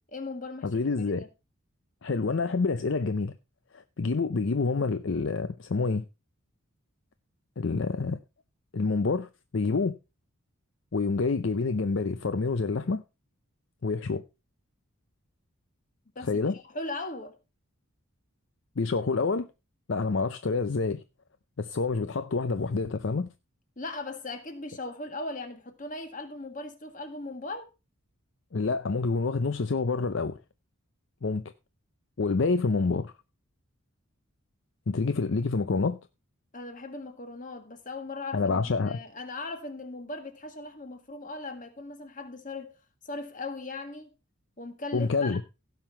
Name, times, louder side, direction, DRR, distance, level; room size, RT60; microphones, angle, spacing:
voice 1, 0.1-0.8 1.2-1.3 16.1-17.3 23.8-27.7 36.5-42.7 43.0-44.1 44.6-45.4, left 2 dB, 35° left, 1.7 m, -38 dB
voice 2, 0.6-1.2 2.0-3.3 3.7-6.0 7.6-8.2 8.7-9.9 10.9-13.0 13.8-14.2 16.2-16.6 18.8-19.5 19.9-21.0 21.6-23.3 28.5-30.4 31.2-31.4 32.2-33.1 34.9-36.0 38.3-39.0 44.9-45.4, left 4 dB, 55° left, 0.5 m, -27 dB
16.5 x 5.8 x 4.4 m
head